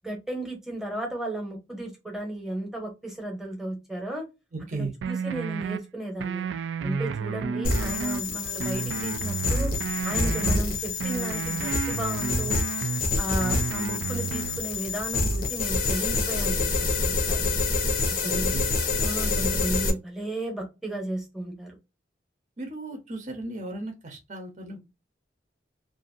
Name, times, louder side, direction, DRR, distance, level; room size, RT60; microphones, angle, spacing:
voice 1, 0.0-4.2 4.8-6.4 6.8-9.7 10.0-12.6 13.2-17.6 18.2-18.5 19.0-21.8, right 1 dB, ahead, 1 dB, 0.8 m, -34 dB
voice 2, 4.5-4.9 18.2-18.7 22.6-24.8, right 2 dB, 40° right, 3 dB, 0.7 m, -36 dB
sound 1, 5.0-5.8 6.2-8.2 8.6-10.6 11.0-13.0 13.4-14.6, right 6 dB, 80° right, 0.3 m, -31 dB
sound 2, 7.6-19.9, left 3 dB, 45° left, 0.6 m, -27 dB
2.5 x 2.5 x 2.5 m, 0.25 s
head